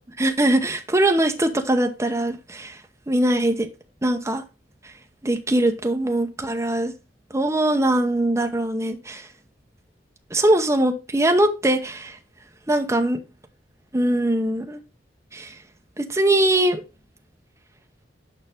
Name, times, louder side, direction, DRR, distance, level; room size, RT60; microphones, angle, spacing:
voice 1, 0.2-2.8 3.1-3.7 4.0-4.4 4.8-4.9 5.2-6.9 7.3-9.3 10.3-12.2 12.7-13.2 13.9-14.8 15.3-15.5 16.0-16.8, right 1 dB, 15° right, 0.8 m, -21 dB
6.8 x 5.5 x 3.5 m
head